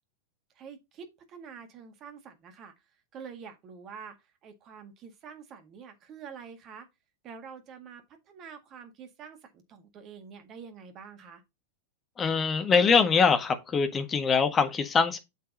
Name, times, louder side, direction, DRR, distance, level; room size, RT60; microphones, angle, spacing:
voice 1, 0.6-2.7 3.1-4.1 4.4-6.9 7.2-11.4, right 6 dB, 35° right, 1.9 m, -46 dB
voice 2, 12.2-15.2, left 5 dB, 20° left, 1.6 m, -23 dB
8.2 x 7.6 x 2.7 m
figure-of-eight pair, 90°, 0 cm